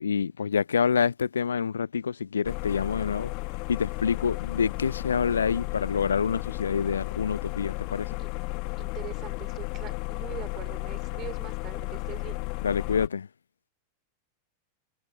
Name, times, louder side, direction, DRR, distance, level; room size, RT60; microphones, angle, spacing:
voice 1, 0.0-3.3 3.7-8.1 12.6-13.3, left 6 dB, 70° left, 0.4 m, -27 dB
sound 1, 2.4-13.1, left 30 dB, 45° left, 1.3 m, -34 dB
voice 2, 8.8-12.4, right 14 dB, 35° right, 4.6 m, -42 dB
figure-of-eight pair, 90°, 0 cm